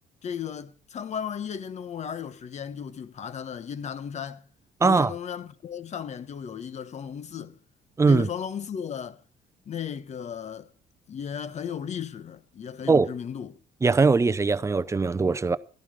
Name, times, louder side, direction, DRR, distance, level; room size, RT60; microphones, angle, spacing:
voice 1, 0.2-4.5 4.8-7.6 8.0-9.2 9.7-10.7 11.1-13.6, left 8 dB, 40° left, 1.1 m, -35 dB
voice 2, 4.8-5.1 8.0-8.3 12.9-13.1 13.8-15.6, right 4 dB, 15° right, 0.6 m, -21 dB
13.0 x 11.0 x 4.9 m
cardioid pair, 110°, 17 cm